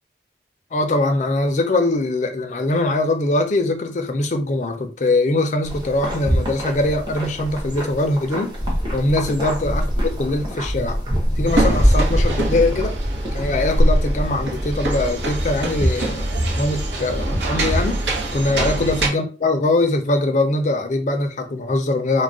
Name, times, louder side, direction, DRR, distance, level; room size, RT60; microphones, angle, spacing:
voice 1, 0.7-8.5 8.9-11.0 11.4-12.9 13.3-16.3 16.6-18.0 18.3-22.2, left 2 dB, 45° left, 0.4 m, -22 dB
sound 1, 5.6-18.6, equal, 25° right, 0.7 m, -23 dB
sound 2, 11.5-19.1, right 1 dB, 85° right, 0.7 m, -25 dB
2.3 x 2.1 x 3.7 m
head